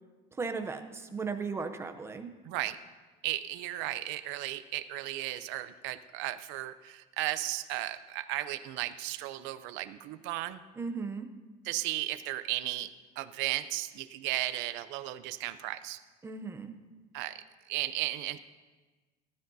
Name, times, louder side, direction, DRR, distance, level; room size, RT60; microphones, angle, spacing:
voice 1, 0.4-2.3 10.8-11.3 16.2-16.7, right 4 dB, 15° right, 7 dB, 0.6 m, -36 dB
voice 2, 2.4-2.8 3.2-10.6 11.6-16.0 17.1-18.4, right 15 dB, 85° right, 12 dB, 0.6 m, -35 dB
19.0 x 12.5 x 2.7 m, 1.3 s
cardioid pair, 170°, 19 cm